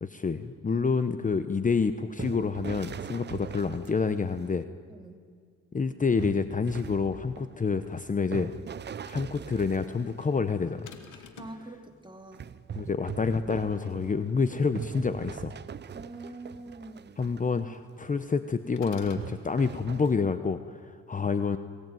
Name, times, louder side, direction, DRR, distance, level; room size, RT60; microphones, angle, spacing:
voice 1, 0.0-4.7 5.7-8.5 9.0-10.9 12.7-15.5 17.2-21.6, left 5 dB, 25° left, 11 dB, 1.0 m, -28 dB
sound 1, 1.8-4.6 6.2-10.8 12.3-17.6 18.0-18.2 19.2-20.1, right 7 dB, 35° right, 0.7 m, -41 dB
sound 2, 10.9-11.7 18.8-19.3, left 7 dB, 80° left, 2.5 m, -46 dB
voice 2, 11.1-12.5 15.9-17.3, right 2 dB, 15° right, 4 dB, 3.1 m, -45 dB
23.0 x 18.5 x 9.2 m, 2.1 s
cardioid pair, 90°, 30 cm